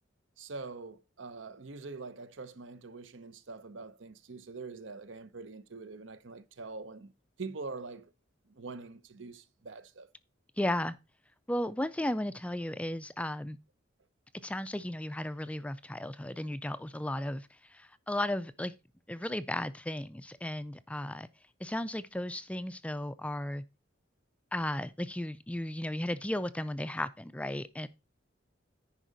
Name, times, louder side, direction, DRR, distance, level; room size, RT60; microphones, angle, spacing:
voice 1, 0.4-7.1 7.4-8.1 8.5-10.1, right 3 dB, 75° right, 0.8 m, -44 dB
voice 2, 10.6-11.0 11.5-13.6 14.4-18.8 19.1-21.3 21.6-23.6 24.5-27.9, left 1 dB, 5° left, 0.3 m, -35 dB
10.0 x 5.1 x 4.0 m
head